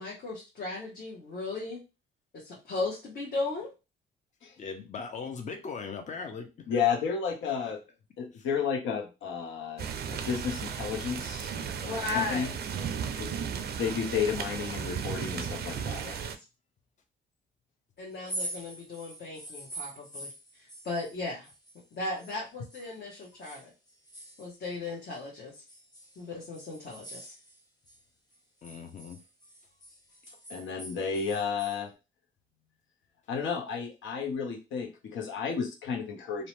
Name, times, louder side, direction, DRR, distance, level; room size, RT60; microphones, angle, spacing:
voice 1, 0.0-1.8 2.3-3.7 11.8-12.6 16.0-16.2 18.0-20.3 20.6-21.5 21.9-23.7 24.4-25.6 26.2-27.3, left 3 dB, 55° left, -4 dB, 1.0 m, -36 dB
voice 2, 4.6-6.8 7.4-7.8 8.3-8.5 28.6-29.2, left 5 dB, 35° left, 5 dB, 0.6 m, -40 dB
voice 3, 6.7-7.8 8.2-12.5 13.2-13.3 13.8-16.0 30.5-31.9 33.3-36.5, left 6 dB, 75° left, 2 dB, 0.8 m, -32 dB
sound 1, 9.8-16.4, right 7 dB, 55° right, 0.4 m, -35 dB
sound 2, 18.1-22.4 22.7-25.2 25.7-28.0 28.3-31.8, right 1 dB, 20° left, 1.0 m, -44 dB
2.7 x 2.1 x 3.1 m, 0.28 s
cardioid pair, 90°, 20 cm